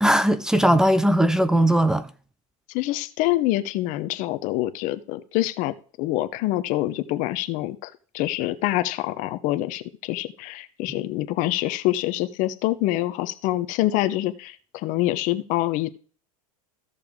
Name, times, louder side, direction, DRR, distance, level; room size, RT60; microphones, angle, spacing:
voice 1, 0.0-2.1, right 1 dB, 5° right, 0.4 m, -19 dB
voice 2, 2.7-15.9, left 16 dB, 45° left, 0.8 m, -26 dB
14.0 x 6.7 x 3.6 m
supercardioid pair, 135°, 18 cm